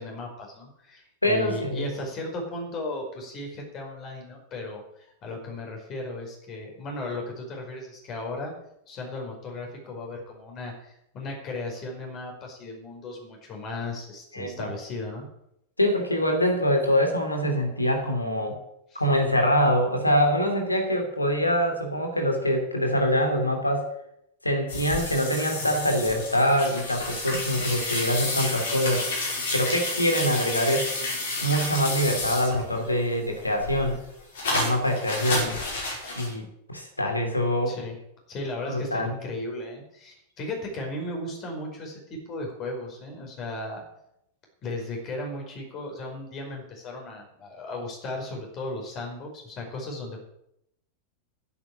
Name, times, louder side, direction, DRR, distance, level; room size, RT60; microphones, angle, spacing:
voice 1, 0.0-8.5 8.9-15.3 18.9-19.0 37.7-38.0 38.3-43.8 44.6-50.2, left 2 dB, 35° left, 1 dB, 5.2 m, -36 dB
voice 2, 1.2-1.9 14.3-14.7 15.8-18.6 18.9-23.9 24.4-29.0 29.5-30.9 31.4-34.0 34.5-35.6 36.1-37.7 38.7-39.1, equal, 85° left, 4 dB, 3.2 m, -24 dB
sound 1, 24.7-32.9 33.3-36.3, left 2 dB, 60° left, 5.6 m, -31 dB
10.5 x 8.8 x 8.9 m, 0.78 s
figure-of-eight pair, 90°, 0 cm